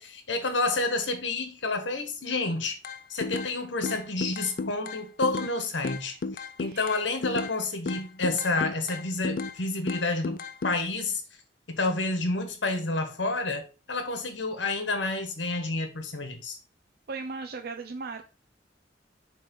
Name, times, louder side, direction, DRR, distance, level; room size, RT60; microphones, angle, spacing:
voice 1, 0.0-2.8 3.1-6.2 6.6-11.2 11.7-16.6, left 3 dB, 80° left, 1.5 m, -29 dB
sound 1, 2.8-3.5 3.8-5.5 5.8-7.6 7.9-9.6 9.9-10.8, left 4 dB, 50° left, 0.4 m, -33 dB
voice 2, 17.1-18.2, right 4 dB, 55° right, 0.5 m, -37 dB
6.8 x 3.4 x 5.3 m
head